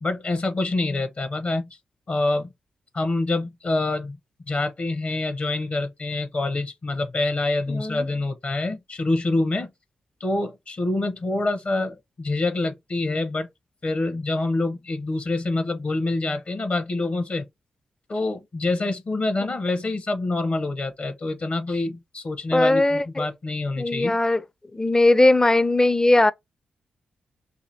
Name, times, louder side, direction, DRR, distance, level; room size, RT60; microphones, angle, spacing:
voice 1, 0.0-1.7 2.1-2.5 2.9-4.2 4.5-9.7 10.2-13.5 13.8-17.5 18.1-24.2, left 2 dB, 50° left, 0.7 m, -26 dB
voice 2, 7.7-8.0 22.5-23.3 23.8-24.4 24.7-26.3, left 2 dB, 20° left, 0.4 m, -19 dB
2.8 x 2.7 x 3.9 m
supercardioid pair, 40°, 3 cm